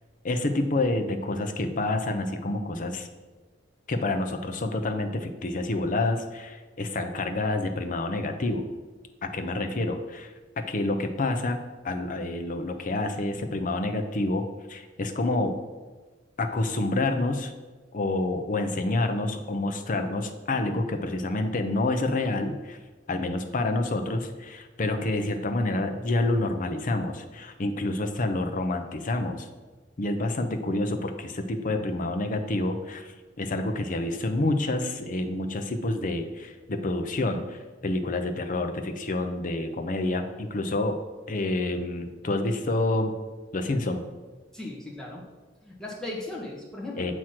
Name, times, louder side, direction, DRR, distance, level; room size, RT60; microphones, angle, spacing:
voice 1, 0.2-3.1 3.9-8.7 9.2-10.3 10.7-15.6 16.4-17.5 17.9-22.8 23.1-29.5 30.0-41.0 41.3-43.1 43.5-44.1 47.0-47.1, left 2 dB, 45° left, 6 dB, 0.6 m, -28 dB
voice 2, 44.5-45.2 45.6-47.1, left 2 dB, 5° left, -4 dB, 1.3 m, -37 dB
7.5 x 3.1 x 5.8 m, 1.3 s
head